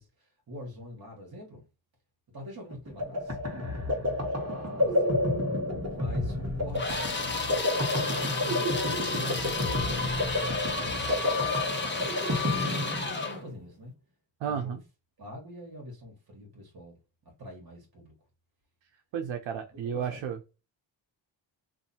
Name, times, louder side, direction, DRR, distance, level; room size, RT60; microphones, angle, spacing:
voice 1, 0.0-1.6 2.3-5.2 5.9-7.8 8.5-8.7 9.1-13.9 14.4-14.8 15.2-17.0 17.4-18.1 19.7-20.3, left 1 dB, 50° right, 1.4 m, -45 dB
sound 1, 2.7-13.6, left 1 dB, 35° right, 1.3 m, -30 dB
sound 2, 6.8-13.4, left 4 dB, 25° left, 1.0 m, -32 dB
voice 2, 14.4-14.8 19.1-20.4, right 8 dB, 85° right, 0.7 m, -32 dB
2.7 x 2.6 x 4.1 m
cardioid pair, 85°, 45 cm